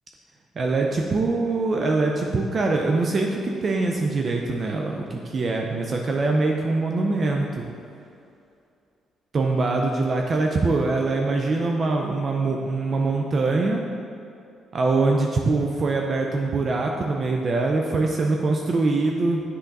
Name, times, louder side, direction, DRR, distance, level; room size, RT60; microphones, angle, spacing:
voice 1, 0.6-7.7 9.3-13.8 14.7-19.4, right 3 dB, 45° right, 1 dB, 0.5 m, -23 dB
8.2 x 3.8 x 4.0 m, 2.5 s
cardioid pair, 90°, 0 cm